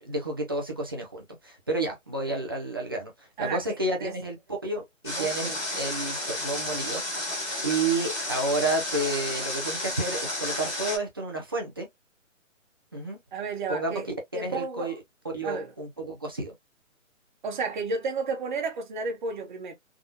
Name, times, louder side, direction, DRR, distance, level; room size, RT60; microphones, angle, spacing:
voice 1, 0.0-4.4 4.6-7.3 7.6-11.9 12.9-13.2 13.7-13.9 14.3-14.9 15.3-16.5, right 2 dB, 20° right, 0.5 m, -30 dB
voice 2, 3.4-4.1 5.2-5.6 13.3-14.1 14.3-14.9 15.4-15.7 17.4-19.7, right 4 dB, 35° right, 1.1 m, -32 dB
Water, 5.0-11.0, left 1 dB, 10° left, 0.7 m, -32 dB
3.5 x 2.3 x 2.5 m
hypercardioid pair, 160°, 40 cm